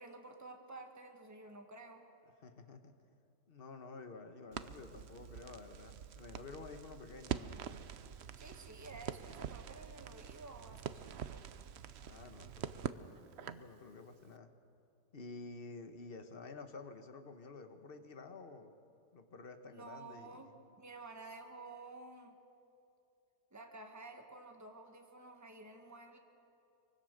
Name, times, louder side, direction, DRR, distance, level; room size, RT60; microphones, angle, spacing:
voice 1, 0.0-2.1 8.4-11.4 19.7-22.3 23.5-26.2, right 3 dB, 10° right, 3 dB, 1.5 m, -52 dB
voice 2, 2.4-2.9 3.5-7.5 12.1-14.5 15.1-18.7 19.1-20.5, left 3 dB, 35° left, 7 dB, 1.3 m, -51 dB
Crackle, 4.5-13.7, right 8 dB, 60° right, 0.7 m, -45 dB
24.0 x 23.5 x 6.6 m, 2.6 s
omnidirectional pair, 1.8 m